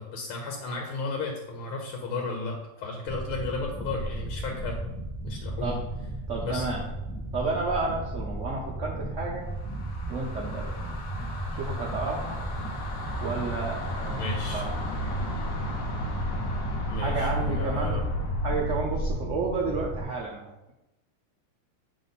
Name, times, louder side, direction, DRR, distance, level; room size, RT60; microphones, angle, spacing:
voice 1, 0.0-4.8 5.2-5.8 6.4-6.7 14.2-14.6 16.9-18.0, left 3 dB, 75° left, 1 dB, 1.6 m, -34 dB
sound 1, 3.1-20.0, right 1 dB, 10° left, 1.3 m, -35 dB
voice 2, 6.3-6.9 7.3-9.5 10.1-10.8 11.6-12.4 13.2-14.7 17.0-18.0 18.4-20.7, right 3 dB, 85° right, -3 dB, 0.6 m, -31 dB
sound 2, 9.5-19.3, left 1 dB, 60° left, 1.5 m, -34 dB
6.8 x 3.6 x 4.1 m, 0.94 s
omnidirectional pair, 2.3 m